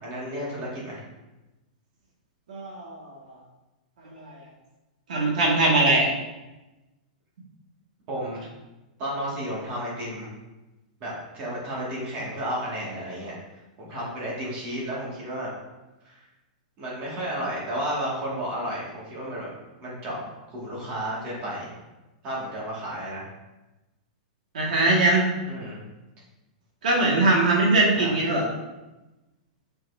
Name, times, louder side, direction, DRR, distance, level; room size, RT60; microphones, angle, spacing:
voice 1, 0.0-1.0 8.1-8.4 9.0-10.3 11.0-13.3 13.8-15.5 16.0-16.2 16.8-19.5 19.8-20.2 20.5-21.7 22.2-23.3 25.4-25.8 27.9-28.2, equal, 25° right, -6 dB, 2.4 m, -32 dB
voice 2, 2.5-3.3 4.1-4.2 5.1-6.1 24.5-25.3 26.8-28.5, right 2 dB, 75° right, -2 dB, 2.2 m, -21 dB
8.7 x 6.2 x 2.9 m, 1.0 s
supercardioid pair, 175°, 4 cm